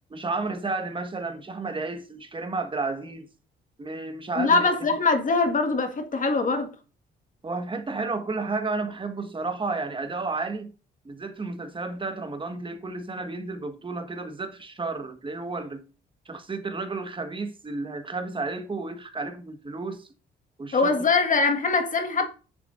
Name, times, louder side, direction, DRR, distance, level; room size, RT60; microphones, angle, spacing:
voice 1, 0.1-3.3 3.8-4.7 7.4-10.7 11.0-15.8 16.2-20.1 20.6-21.1, right 3 dB, 25° right, 1.6 m, -32 dB
voice 2, 4.4-6.7 20.7-22.3, left 4 dB, 40° left, 1.8 m, -22 dB
10.5 x 6.9 x 2.6 m
cardioid pair, 90°, 20 cm